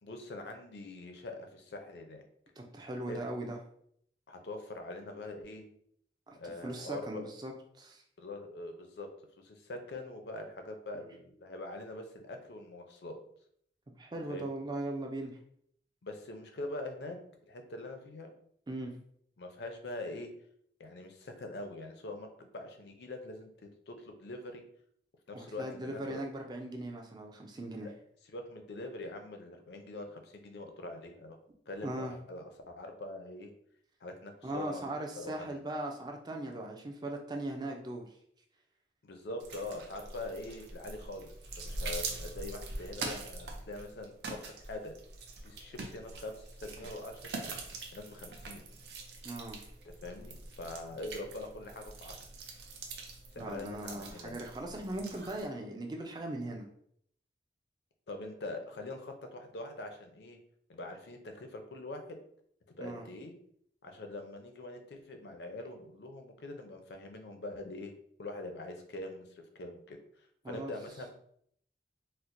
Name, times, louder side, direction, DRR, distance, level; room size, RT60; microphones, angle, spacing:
voice 1, 0.0-2.2 3.1-3.3 4.3-5.7 6.4-7.2 8.2-9.1 9.4-13.2 14.3-14.6 16.0-17.2 17.5-18.3 19.4-20.3 20.8-23.5 23.9-24.6 25.3-26.2 27.7-27.9 28.3-31.4 31.7-33.5 34.0-34.8 35.2-35.6 39.0-41.3 41.6-44.9 45.4-47.5 47.9-48.6 50.0-52.2 53.3-54.4 58.1-60.4 60.7-62.2 62.7-63.3 63.8-70.0 70.5-71.1, left 2 dB, 70° left, 5 dB, 0.5 m, -43 dB
voice 2, 2.6-3.6 6.3-7.5 7.8-8.0 14.0-15.4 18.7-18.9 25.3-27.9 31.8-32.1 34.4-38.1 49.2-49.6 53.4-56.7 62.8-63.0 70.4-70.7, right 1 dB, 25° right, 2 dB, 0.4 m, -39 dB
sound 1, 39.4-55.5, right 3 dB, 70° right, 0.5 m, -44 dB
4.3 x 2.1 x 2.5 m, 0.66 s
head